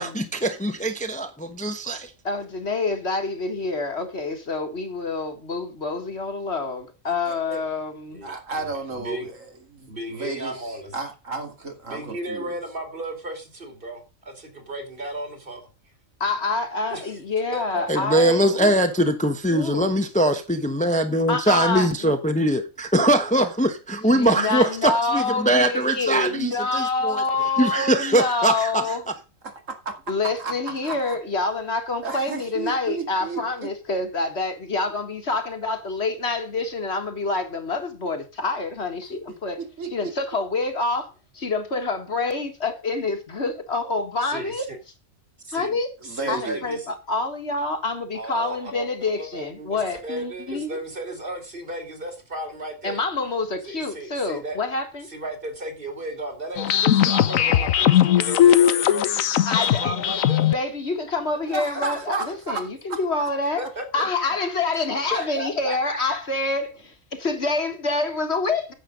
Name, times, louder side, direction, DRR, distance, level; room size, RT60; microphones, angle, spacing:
voice 1, 0.0-2.1 17.9-27.2 27.6-28.8, right 1 dB, 5° left, 1.0 m, -22 dB
voice 2, 2.2-8.2 16.2-18.7 19.5-19.9 21.3-22.1 24.1-29.1 30.1-39.6 39.9-44.7 45.5-45.9 46.3-50.8 52.8-55.1 59.5-63.6 63.9-68.7, left 3 dB, 55° left, 2.0 m, -27 dB
voice 3, 7.3-7.6 8.2-12.5 29.4-29.9 30.4-31.2 32.0-33.7 39.6-40.1 45.7-45.8 46.0-46.6 61.5-63.3, right 3 dB, 70° right, 2.7 m, -33 dB
voice 4, 8.1-9.3 9.9-10.9 11.9-15.7 16.9-17.1 17.5-17.8 44.2-44.8 45.4-45.7 46.0-46.9 48.1-53.3 53.7-54.6 55.1-59.2 59.5-60.5 61.7-62.3 63.6-64.0 65.1-65.8, right 1 dB, 40° right, 3.0 m, -34 dB
sound 1, 56.6-60.5, left 10 dB, 85° left, 1.2 m, -18 dB
10.0 x 7.7 x 5.2 m
omnidirectional pair, 1.4 m